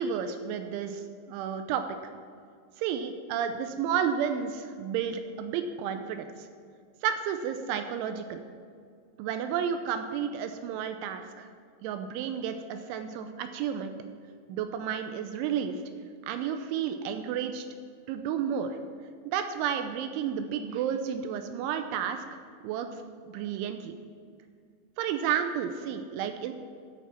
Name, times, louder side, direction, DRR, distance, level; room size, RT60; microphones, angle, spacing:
voice 1, 0.0-2.1 2.8-6.5 7.0-8.4 9.2-11.5 11.8-13.9 14.5-15.8 16.3-17.7 18.1-18.8 19.3-22.3 22.6-23.0 23.3-24.0 25.0-26.5, right 8 dB, 85° right, 8 dB, 3.0 m, -31 dB
13.5 x 9.3 x 4.4 m, 2.2 s
omnidirectional pair, 5.6 m